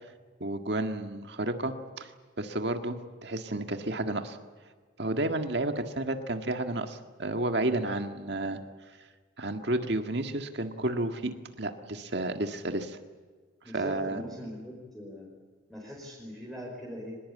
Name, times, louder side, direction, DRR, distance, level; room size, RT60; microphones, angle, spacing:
voice 1, 0.4-2.1 2.4-4.4 5.0-8.6 9.4-13.0 13.7-14.2, right 2 dB, 55° right, 6 dB, 1.8 m, -31 dB
voice 2, 13.6-15.3 15.7-17.2, left 1 dB, ahead, -3 dB, 5.4 m, -41 dB
24.0 x 21.0 x 8.6 m, 1.5 s
head